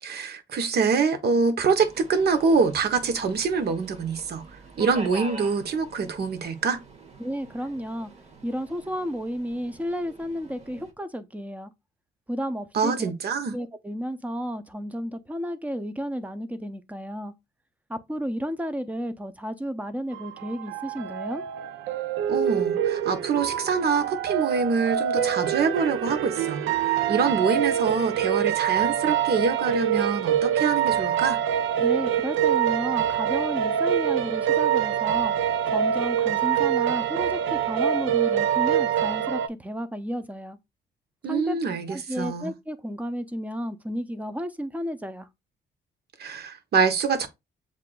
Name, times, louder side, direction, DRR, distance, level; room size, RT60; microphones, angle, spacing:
voice 1, 0.0-4.4 4.8-6.8 12.7-13.5 22.3-31.4 41.2-42.5 46.2-47.3, right 5 dB, 55° right, 0.9 m, -25 dB
Subway metro underground, 1.8-10.9, right 2 dB, 35° right, 1.1 m, -44 dB
voice 2, 7.2-8.1 8.4-11.7 12.3-13.1 13.5-17.3 17.9-21.4 31.8-35.3 35.7-40.6 41.3-41.6 41.9-45.3, equal, 5° right, 0.6 m, -32 dB
sound 1, 20.1-39.5, right 9 dB, 80° right, 0.4 m, -25 dB
7.4 x 2.5 x 2.2 m
cardioid pair, 90°, 20 cm